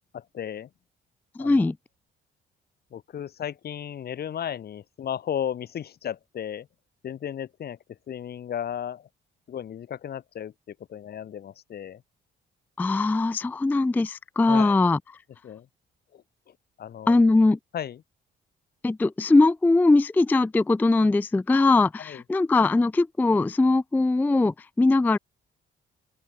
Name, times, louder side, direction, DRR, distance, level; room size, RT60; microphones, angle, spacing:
voice 1, 0.1-0.7 1.4-1.6 2.9-6.7 7.0-9.1 9.5-12.0 14.5-14.8 15.4-15.7 16.1-17.2 17.7-18.0 22.0-22.2, left 9 dB, 55° left, 1.0 m, -35 dB
voice 2, 1.4-1.8 12.8-15.0 17.1-17.6 18.8-25.2, left 3 dB, 10° left, 0.3 m, -21 dB
open air
cardioid pair, 90°, 20 cm